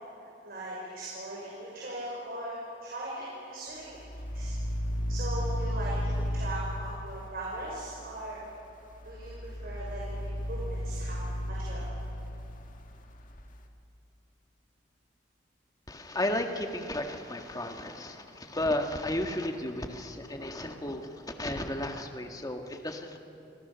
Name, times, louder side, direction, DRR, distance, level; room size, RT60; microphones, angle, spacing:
voice 1, 0.4-3.9 4.3-4.5 5.1-8.4 9.0-11.8, right 1 dB, 55° right, -5 dB, 6.0 m, -39 dB
sound 1, 4.0-7.7 9.0-13.4, equal, 45° left, 1.8 m, -34 dB
voice 2, 15.9-23.2, left 1 dB, 20° left, 4 dB, 1.8 m, -33 dB
30.0 x 26.5 x 7.0 m, 2.9 s
head